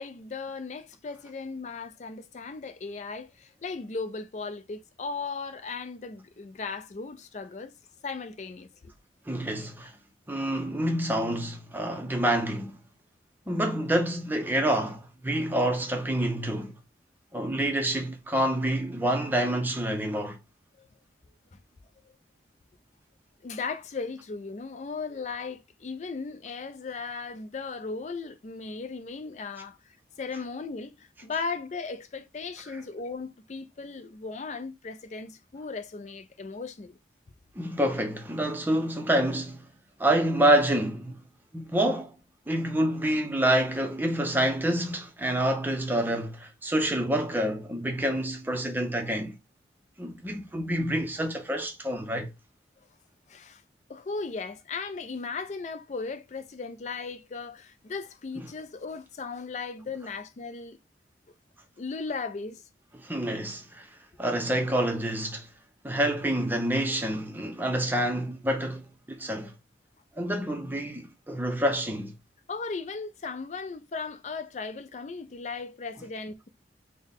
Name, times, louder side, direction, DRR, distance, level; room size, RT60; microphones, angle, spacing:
voice 1, 0.0-7.7 8.0-8.9 20.8-20.9 21.5-21.6 23.4-29.8 30.2-37.0 53.3-53.6 53.9-60.8 61.8-62.6 72.5-76.5, left 4 dB, 40° left, 0.4 m, -37 dB
voice 2, 9.3-9.9 10.3-12.8 13.5-16.8 17.3-20.4 32.7-32.8 37.6-39.7 40.0-41.2 41.5-42.2 42.5-49.4 50.0-52.3 58.4-58.5 63.0-63.9 64.2-65.5 65.8-69.5 70.2-72.1, right 1 dB, 10° right, 0.5 m, -27 dB
4.0 x 2.1 x 3.4 m
head